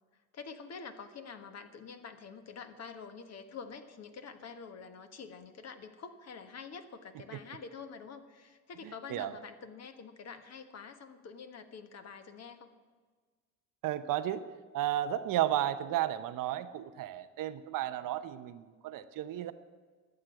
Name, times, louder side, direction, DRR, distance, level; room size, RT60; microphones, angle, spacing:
voice 1, 0.3-12.7, left 5 dB, 40° left, 8 dB, 1.4 m, -47 dB
voice 2, 13.8-14.5 14.7-19.5, right 12 dB, 50° right, 11 dB, 0.8 m, -33 dB
12.0 x 7.7 x 9.3 m, 1.5 s
supercardioid pair, 85°, 41 cm